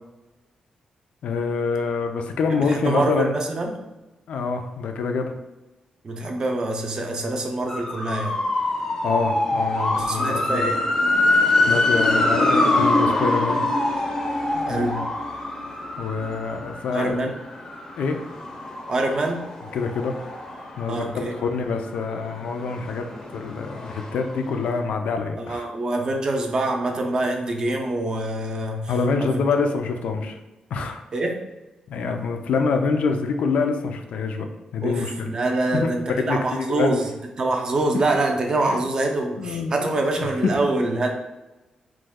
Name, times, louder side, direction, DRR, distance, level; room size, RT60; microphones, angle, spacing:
voice 1, 1.2-3.4 4.3-5.3 9.0-10.7 11.7-13.6 14.5-15.1 16.0-17.3 18.0-18.2 19.7-20.1 20.8-23.1 23.3-25.7 28.9-30.4 30.7-31.0 31.9-34.5 34.7-35.3 35.7-35.9 36.3-37.0 38.6-38.8 39.4-39.9 40.4-40.6, left 4 dB, 85° left, 5 dB, 0.4 m, -26 dB
voice 2, 2.5-3.8 6.0-8.4 9.9-10.8 14.7-15.0 16.9-17.3 18.9-19.5 20.9-21.3 25.4-28.9 29.2-29.4 31.1-31.4 34.8-37.1 37.4-41.1, right 2 dB, 35° right, 2 dB, 0.4 m, -25 dB
sound 1, 7.7-21.4 21.8-24.4 24.6-24.7, left 2 dB, 25° left, 0.5 m, -24 dB
3.0 x 2.1 x 3.5 m, 1.1 s
wide cardioid pair, 145°, 2 cm